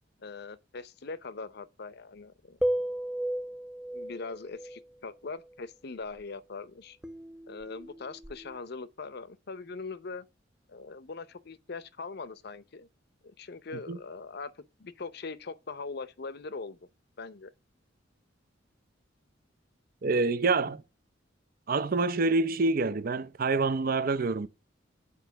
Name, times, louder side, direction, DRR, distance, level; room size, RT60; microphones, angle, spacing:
voice 1, 0.2-2.6 3.9-7.0 7.5-10.3 10.7-12.9 13.2-16.8 17.2-17.5, left 4 dB, 55° left, 0.7 m, -41 dB
sound 1, 2.6-4.8 7.0-8.6, right 1 dB, 5° right, 0.3 m, -34 dB
voice 2, 20.0-20.8 21.7-24.5, right 3 dB, 50° right, 0.6 m, -26 dB
8.5 x 4.4 x 5.6 m
head